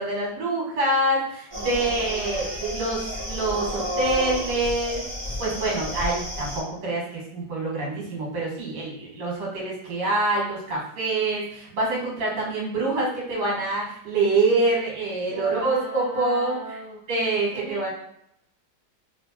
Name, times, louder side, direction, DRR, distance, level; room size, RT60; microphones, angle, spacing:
voice 1, 0.0-5.1 5.4-16.6 17.1-17.9, right 2 dB, 65° right, -3 dB, 1.8 m, -26 dB
sound 1, 1.5-6.6, equal, 20° right, 0.9 m, -31 dB
voice 2, 15.2-17.0 17.5-17.9, right 1 dB, 85° right, -2 dB, 1.3 m, -38 dB
3.1 x 2.9 x 2.9 m, 0.72 s
omnidirectional pair, 2.0 m